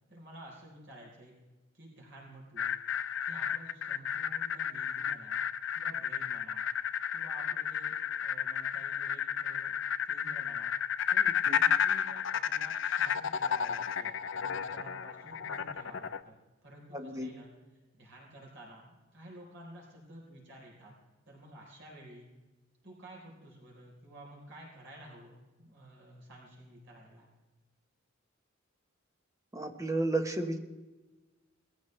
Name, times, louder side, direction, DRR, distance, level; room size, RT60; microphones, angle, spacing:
voice 1, 0.1-1.3 1.7-2.8 3.2-5.4 5.7-6.6 7.1-10.7 11.1-17.5 17.9-20.9 21.3-22.3 22.8-27.3, right 1 dB, 65° right, -2 dB, 4.0 m, -52 dB
sound 1, 2.6-16.2, left 8 dB, 65° left, 0.5 m, -32 dB
voice 2, 16.9-17.3 29.5-30.6, right 2 dB, 15° right, 5 dB, 1.2 m, -32 dB
20.0 x 15.0 x 3.3 m, 1.2 s
head